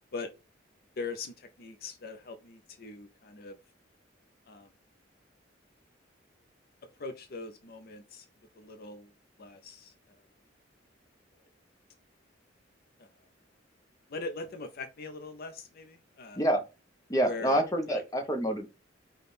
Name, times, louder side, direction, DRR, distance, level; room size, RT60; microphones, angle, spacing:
voice 1, 1.0-3.6 4.5-4.7 7.0-8.2 8.6-9.1 9.4-9.9 13.0-13.1 14.1-16.4 17.2-17.6 17.9-18.0, left 3 dB, 55° left, 0.5 m, -41 dB
voice 2, 17.1-18.8, right 1 dB, 20° left, 0.8 m, -27 dB
5.1 x 2.3 x 4.1 m
head